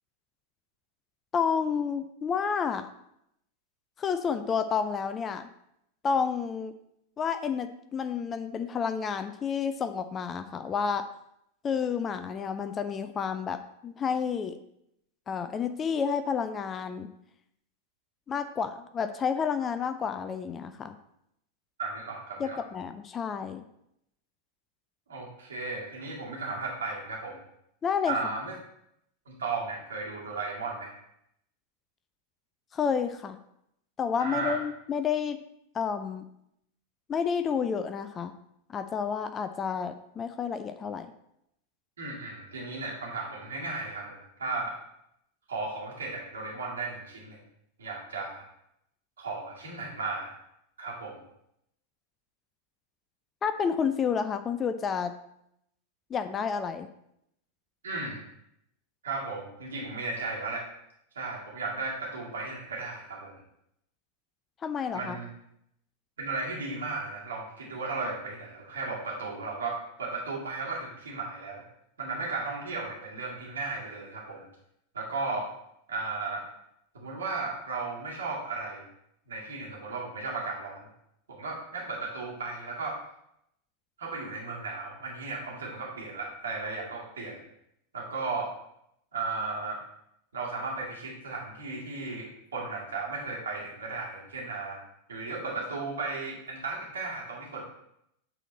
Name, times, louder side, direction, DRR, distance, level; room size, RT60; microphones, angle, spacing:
voice 1, 1.3-2.9 4.0-5.4 6.0-6.7 7.2-11.0 11.6-14.6 15.3-17.1 18.3-21.0 22.4-23.6 27.8-28.1 32.7-33.4 34.0-35.4 35.7-36.2 37.1-38.3 38.7-41.1 53.4-55.1 56.1-56.9 64.6-65.2, left 6 dB, 25° left, 10 dB, 0.4 m, -30 dB
voice 2, 21.8-22.6 25.1-27.4 28.1-28.5 29.3-30.9 34.2-34.6 42.0-44.8 45.5-47.4 47.8-48.5 49.2-50.3 50.8-51.1 57.8-58.2 59.0-60.7 61.1-63.4 64.9-65.3 66.2-71.6 72.0-74.5 74.9-75.5 75.9-76.4 76.9-78.8 79.3-80.9 81.3-83.0 84.0-87.4 87.9-88.5 89.1-89.8 90.3-94.8 95.1-97.6, right 3 dB, 65° right, -3 dB, 2.2 m, -35 dB
8.1 x 4.2 x 4.2 m, 0.77 s
figure-of-eight pair, 90°, 0 cm